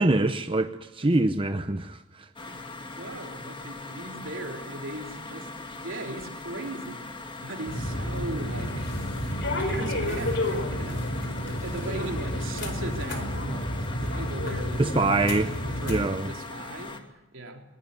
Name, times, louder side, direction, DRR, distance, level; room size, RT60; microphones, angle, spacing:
voice 1, 0.0-2.3 14.8-15.5 15.9-16.3, right 2 dB, 25° right, 0.8 m, -24 dB
sound 1, 2.4-17.0, left 3 dB, 25° left, 2.3 m, -40 dB
voice 2, 2.5-7.1 7.4-8.9 9.6-11.1 11.5-13.8 14.0-17.6, right 1 dB, 70° right, 3.8 m, -38 dB
sound 2, 7.7-16.1, left 1 dB, 60° left, 4.8 m, -30 dB
21.5 x 20.0 x 9.7 m
head